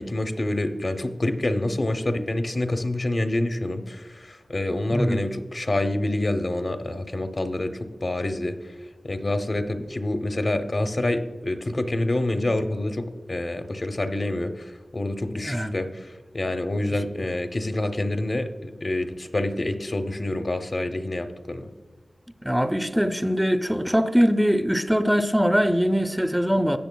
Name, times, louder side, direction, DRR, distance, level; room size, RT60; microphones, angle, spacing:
voice 1, 0.0-7.7 8.0-8.6 9.0-16.1 16.3-21.7, left 1 dB, 45° left, 0.8 m, -27 dB
voice 2, 4.9-5.2 15.3-15.8 22.4-26.8, equal, 5° right, 0.5 m, -22 dB
17.0 x 6.6 x 2.3 m
wide cardioid pair, 60°, 0 cm